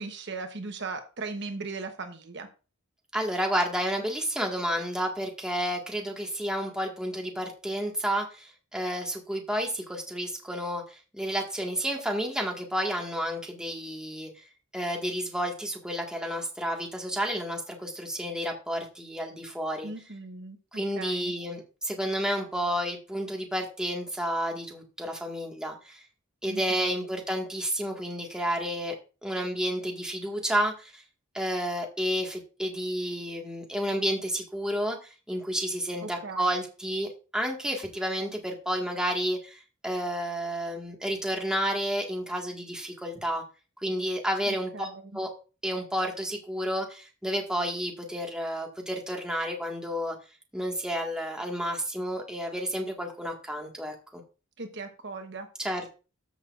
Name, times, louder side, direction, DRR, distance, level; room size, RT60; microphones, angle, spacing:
voice 1, 0.0-2.5 19.8-21.3 26.5-27.0 36.0-36.6 44.5-45.2 54.6-55.5, right 3 dB, 60° right, 6 dB, 1.0 m, -38 dB
voice 2, 3.1-14.3 14.7-19.9 20.7-26.0 26.4-28.9 29.2-31.0 31.3-43.4 43.8-44.9 45.1-45.3 45.6-50.2 50.5-54.2 55.6-55.9, equal, 5° right, 0 dB, 1.7 m, -31 dB
14.0 x 6.2 x 2.5 m, 0.33 s
head